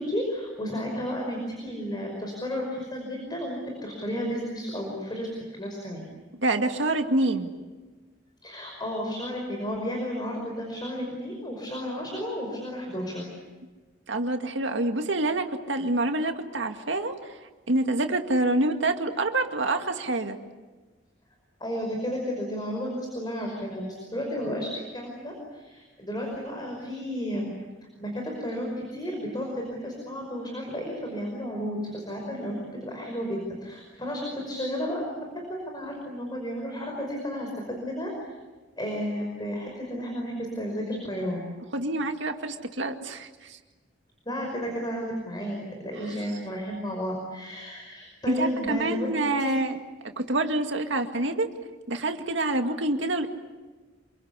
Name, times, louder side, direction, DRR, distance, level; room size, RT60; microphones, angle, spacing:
voice 1, 0.0-5.3 5.6-6.1 8.4-13.3 21.6-27.5 28.0-38.1 38.8-41.4 44.3-49.6, equal, 25° left, 0 dB, 5.5 m, -32 dB
voice 2, 6.4-7.5 14.1-17.3 17.7-20.4 41.7-43.6 48.3-49.8 50.2-51.5 51.9-53.3, right 2 dB, 80° right, 5 dB, 2.1 m, -27 dB
27.0 x 24.5 x 8.3 m, 1.3 s
head